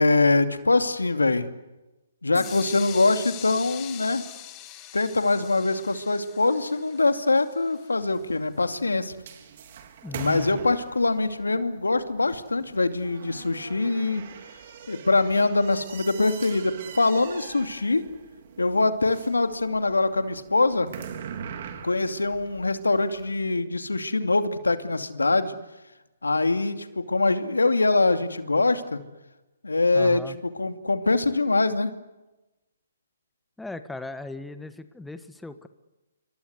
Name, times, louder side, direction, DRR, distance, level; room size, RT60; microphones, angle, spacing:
voice 1, 0.0-1.5 2.2-4.2 4.9-9.1 10.2-14.2 14.9-18.0 18.6-20.9 21.8-25.6 26.2-29.0 29.6-30.2 30.6-31.9, left 3 dB, 90° left, 9 dB, 2.5 m, -23 dB
sound 1, 2.3-8.2, left 14 dB, 25° left, 2.3 m, -42 dB
sound 2, 8.0-23.4, right 7 dB, 50° right, 3.9 m, -43 dB
voice 2, 10.0-10.6 29.9-30.4 33.6-35.7, left 2 dB, 5° left, 10 dB, 1.5 m, -37 dB
27.5 x 24.5 x 8.1 m, 1.0 s
hypercardioid pair, 140°, 0 cm